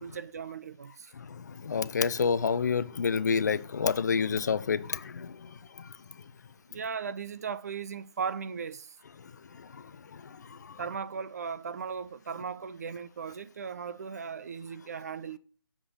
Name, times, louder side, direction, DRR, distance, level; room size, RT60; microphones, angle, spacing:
voice 1, 0.0-1.1 6.7-9.0 10.8-15.4, right 6 dB, 40° right, 0.4 m, -37 dB
voice 2, 1.2-5.9 9.6-10.8, left 6 dB, 45° left, 0.4 m, -30 dB
8.3 x 7.2 x 3.6 m
figure-of-eight pair, 155°, 13 cm